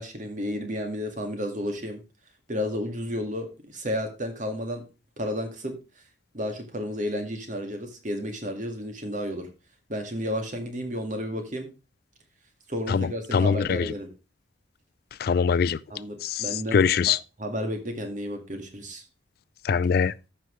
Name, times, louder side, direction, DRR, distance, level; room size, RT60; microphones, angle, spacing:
voice 1, 0.0-2.0 2.5-4.8 5.2-5.7 6.3-9.5 9.9-11.7 12.7-14.1 15.9-16.8 17.4-19.0, equal, 45° right, 2.0 m, -32 dB
voice 2, 13.3-13.9 15.2-15.8 16.3-16.4 16.7-17.2 19.7-20.1, left 6 dB, 60° left, 0.4 m, -22 dB
14.0 x 5.9 x 3.2 m
head